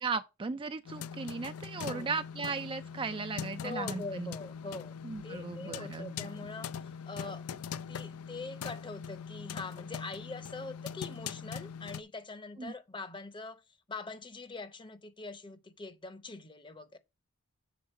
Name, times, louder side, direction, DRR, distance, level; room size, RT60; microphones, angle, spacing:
voice 1, 0.0-4.3 5.0-6.1 12.6-12.7, right 4 dB, 25° right, 0.4 m, -36 dB
sound 1, 0.9-12.0, left 7 dB, 75° left, 0.4 m, -42 dB
voice 2, 1.8-2.1 3.6-4.9 5.2-7.4 7.9-13.6 13.9-17.0, left 3 dB, 20° left, 0.8 m, -43 dB
7.1 x 3.9 x 5.5 m
head